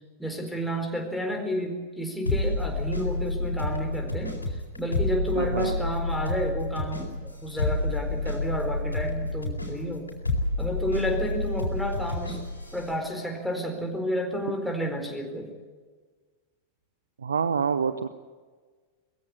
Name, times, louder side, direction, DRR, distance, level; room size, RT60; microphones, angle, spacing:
voice 1, 0.2-7.2 7.4-10.1 10.6-12.4 12.7-15.5, equal, ahead, 2 dB, 4.3 m, -31 dB
sound 1, 2.3-12.9, left 2 dB, 80° left, 4.4 m, -29 dB
voice 2, 5.4-5.7 17.2-18.1, right 6 dB, 70° right, 12 dB, 0.8 m, -26 dB
21.5 x 15.5 x 9.8 m, 1.4 s
figure-of-eight pair, 90°, 0 cm